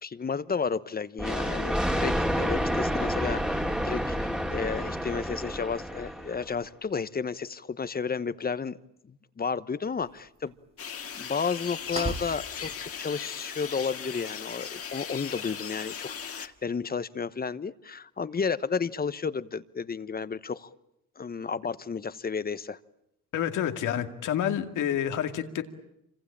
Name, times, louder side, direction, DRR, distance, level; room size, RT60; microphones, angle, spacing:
voice 1, 0.0-8.8 9.1-10.5 11.1-20.7 21.2-22.8, left 5 dB, 30° left, 15 dB, 1.1 m, -32 dB
Thunder, 1.2-6.5, equal, ahead, 2.4 m, -29 dB
sound 1, 10.0-16.6, right 3 dB, 20° right, 2.0 m, -44 dB
sound 2, 10.8-16.5, left 7 dB, 50° left, 1.9 m, -38 dB
voice 2, 23.3-25.6, left 10 dB, 80° left, 6 dB, 2.3 m, -28 dB
27.0 x 25.5 x 8.8 m, 0.82 s
cardioid pair, 90°, 30 cm